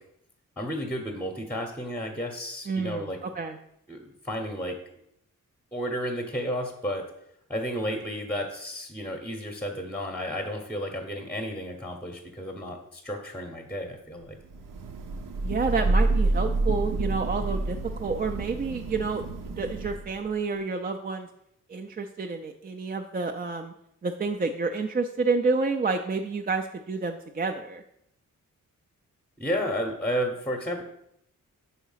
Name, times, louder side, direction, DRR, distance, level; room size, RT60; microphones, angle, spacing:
voice 1, 0.6-3.2 3.9-4.0 4.2-4.8 5.7-7.0 7.5-14.4 29.4-30.8, equal, 5° left, 3 dB, 0.8 m, -32 dB
voice 2, 2.7-3.1 3.3-3.6 15.4-21.3 21.7-23.7 24.0-27.8, right 4 dB, 30° right, 4 dB, 0.4 m, -29 dB
Thunder / Rain, 14.5-20.3, right 2 dB, 75° right, 0.7 m, -28 dB
5.7 x 4.1 x 5.6 m, 0.77 s
wide cardioid pair, 110°, 32 cm